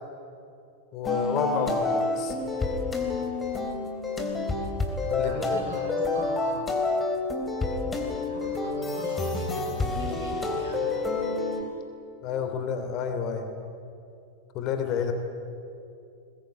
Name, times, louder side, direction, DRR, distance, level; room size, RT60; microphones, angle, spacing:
voice 1, 0.9-2.4 5.1-5.6 12.2-13.5 14.5-15.1, left 6 dB, 40° left, 6 dB, 2.8 m, -29 dB
sound 1, 1.0-11.6, left 3 dB, 15° left, 3.4 m, -28 dB
voice 2, 5.2-6.6 8.3-11.0, right 2 dB, 70° right, 2 dB, 5.1 m, -41 dB
21.5 x 20.5 x 9.0 m, 2.5 s
figure-of-eight pair, 90°, 0 cm